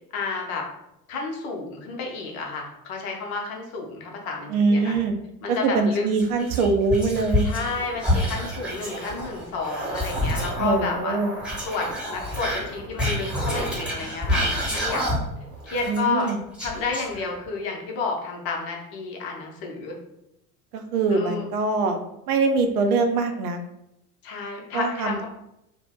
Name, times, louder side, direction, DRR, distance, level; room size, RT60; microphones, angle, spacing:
voice 1, 0.1-0.7 1.1-5.0 5.4-6.1 7.4-11.2 11.7-15.1 15.6-16.3 16.6-20.0 21.1-21.5 24.2-25.3, left 4 dB, 45° left, 1 dB, 0.7 m, -31 dB
voice 2, 4.5-5.2 5.5-7.5 10.6-11.3 15.9-16.4 20.7-22.0 22.3-23.6 24.7-25.3, right 3 dB, 65° right, 6 dB, 0.6 m, -23 dB
Whispering, 6.1-7.7 8.0-10.7 11.4-15.4 15.7-17.5, left 1 dB, ahead, 1.2 m, -28 dB
sound 1, 7.5-15.9, right 2 dB, 25° right, 0.9 m, -38 dB
2.6 x 2.1 x 3.5 m, 0.84 s
figure-of-eight pair, 70°, 48 cm